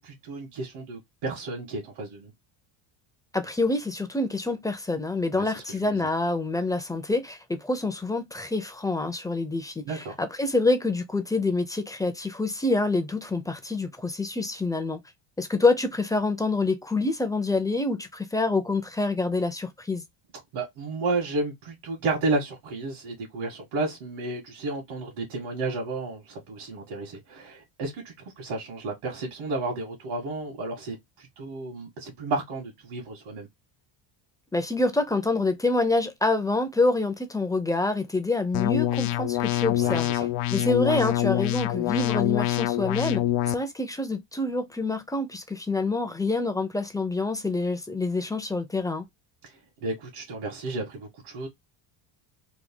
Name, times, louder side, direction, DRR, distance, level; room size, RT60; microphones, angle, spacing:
voice 1, 0.0-2.3 5.3-6.1 9.9-10.0 20.5-33.5 39.8-40.3 49.4-51.5, right 3 dB, 75° right, 1.8 m, -32 dB
voice 2, 3.3-15.0 15.4-20.0 34.5-40.3 40.5-43.2 43.5-49.1, left 2 dB, 10° left, 0.4 m, -26 dB
sound 1, 38.5-43.5, left 14 dB, 80° left, 0.6 m, -25 dB
3.6 x 2.3 x 3.6 m
cardioid pair, 115°, 50 cm